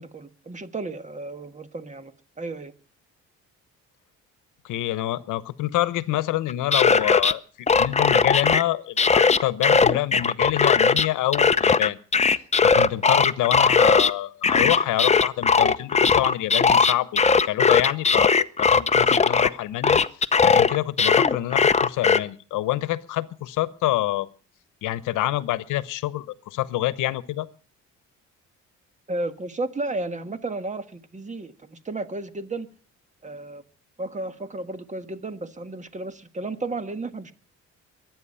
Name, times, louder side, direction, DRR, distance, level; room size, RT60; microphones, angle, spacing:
voice 1, 0.0-2.1 2.4-2.7 29.1-32.7 33.2-33.6 34.0-37.3, right 2 dB, 25° right, 1.6 m, -33 dB
voice 2, 4.6-12.0 12.6-18.3 18.6-20.0 20.4-24.3 24.8-27.5, left 15 dB, 90° left, 1.0 m, -27 dB
sound 1, 6.5-7.3 7.7-8.6 9.0-11.1 11.3-14.1 14.4-19.5 19.8-22.2, left 5 dB, 20° left, 0.7 m, -18 dB
23.0 x 9.5 x 5.6 m
cardioid pair, 90°, 30 cm